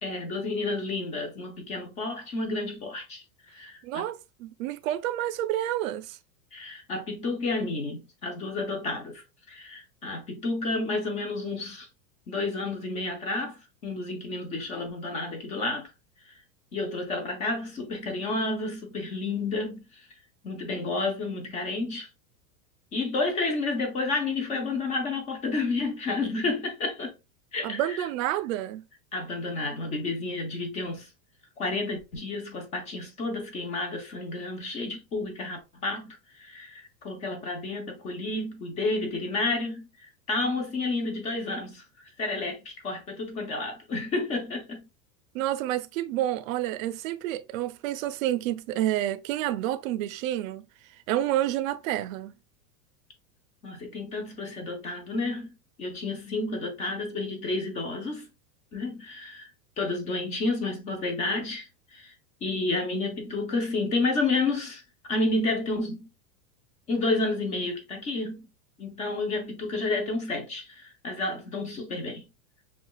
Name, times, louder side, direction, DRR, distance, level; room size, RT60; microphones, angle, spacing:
voice 1, 0.0-3.2 3.5-4.1 6.5-9.2 9.5-11.9 12.3-15.9 16.7-20.0 20.4-22.1 22.9-27.1 27.5-28.1 29.1-31.1 31.6-41.8 42.2-44.9 53.6-55.5 55.8-58.3 58.7-59.5 59.8-62.1 62.4-64.8 65.1-66.1 66.9-68.5 68.8-72.3, left 3 dB, 15° left, 0.4 m, -30 dB
voice 2, 3.8-6.2 27.6-28.8 45.3-50.6 51.1-52.3, right 13 dB, 65° right, 0.5 m, -29 dB
5.7 x 2.3 x 2.3 m
supercardioid pair, 155°, 45 cm